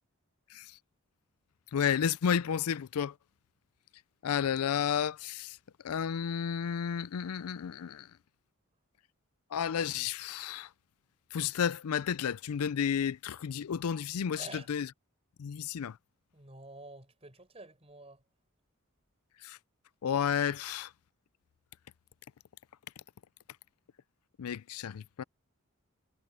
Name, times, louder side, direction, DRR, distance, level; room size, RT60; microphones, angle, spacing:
voice 1, 1.7-3.1 4.2-5.6 5.8-8.1 9.5-10.7 11.3-14.9 15.4-16.0 19.4-19.6 20.0-20.9 24.4-25.2, left 8 dB, 90° left, 0.4 m, -32 dB
voice 2, 14.4-14.7 16.3-18.2, right 2 dB, 25° right, 5.3 m, -49 dB
head